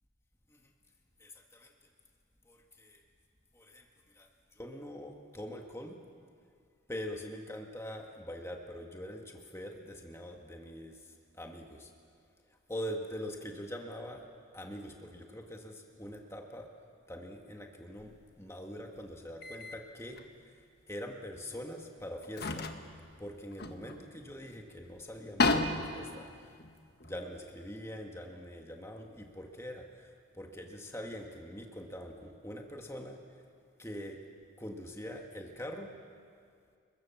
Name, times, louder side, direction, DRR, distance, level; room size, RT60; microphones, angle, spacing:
voice 1, 1.2-1.7 2.4-3.0 3.5-3.9 4.1-6.0 6.9-11.9 12.7-14.2 14.5-16.7 17.1-22.7 23.2-26.6 27.0-33.4 33.8-34.2 34.6-35.9, equal, 15° left, 2 dB, 1.7 m, -44 dB
sound 1, 18.0-18.2 19.4-19.8 20.2-20.3 21.5-21.6 22.2-24.4 24.8-24.9 25.1-27.6, left 3 dB, 50° left, 1.4 m, -34 dB
29.5 x 22.5 x 7.2 m, 2.2 s
head